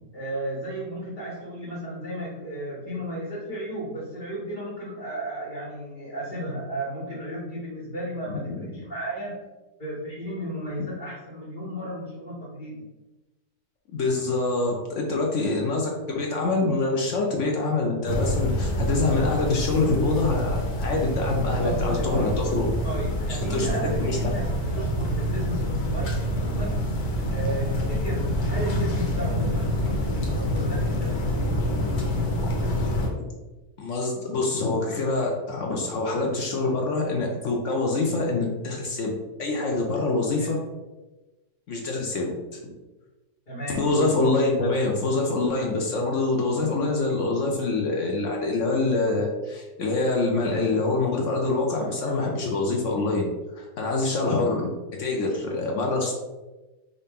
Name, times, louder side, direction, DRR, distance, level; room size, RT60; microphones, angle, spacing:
voice 1, 0.1-9.4 9.8-12.8 21.5-22.4 22.8-26.8 27.3-31.4 40.4-40.6 43.5-43.9, right 1 dB, 30° left, -11 dB, 1.4 m, -34 dB
voice 2, 8.5-8.8 13.9-22.7 23.5-24.2 33.8-39.1 39.4-40.6 41.7-42.3 43.7-53.3 53.6-54.6 55.0-56.1, left 3 dB, 65° left, 0 dB, 0.8 m, -25 dB
sound 1, 18.0-33.1, equal, 90° left, 1.5 m, -26 dB
5.0 x 2.8 x 3.5 m, 1.1 s
omnidirectional pair, 1.8 m